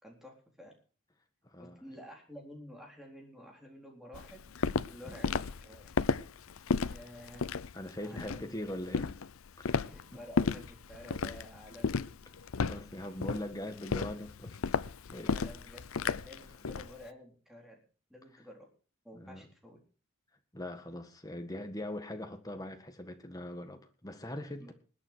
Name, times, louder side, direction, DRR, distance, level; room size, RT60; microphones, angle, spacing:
voice 1, 0.0-0.7 1.6-4.4 4.9-5.9 6.8-7.5 8.0-8.4 9.9-12.0 15.3-15.8 16.1-17.8 18.1-18.7 19.0-19.8 24.6-24.7, equal, ahead, 4.0 m, -51 dB
voice 2, 1.4-1.8 5.0-5.2 7.7-9.1 9.6-9.8 10.1-10.2 12.7-14.6 15.1-15.3 19.1-19.4 20.5-24.7, left 1 dB, 15° left, 1.7 m, -41 dB
Walk footsteps, 4.1-16.9, left 5 dB, 75° left, 0.6 m, -33 dB
20.0 x 9.3 x 4.6 m
head